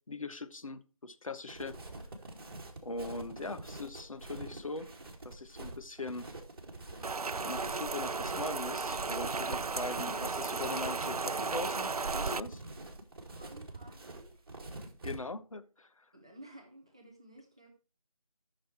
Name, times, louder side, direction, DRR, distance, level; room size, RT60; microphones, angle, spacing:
voice 1, 0.0-1.8 2.8-4.9 5.2-6.3 7.4-12.6 15.0-16.1, left 3 dB, 65° left, 1.2 m, -41 dB
sound 1, 1.5-15.2, right 2 dB, 40° right, 2.5 m, -46 dB
Rain, 7.0-12.4, right 4 dB, 85° right, 0.5 m, -34 dB
voice 2, 13.3-14.5 16.1-17.7, right 1 dB, 10° right, 0.5 m, -54 dB
12.5 x 6.5 x 4.6 m
figure-of-eight pair, 165°, 19 cm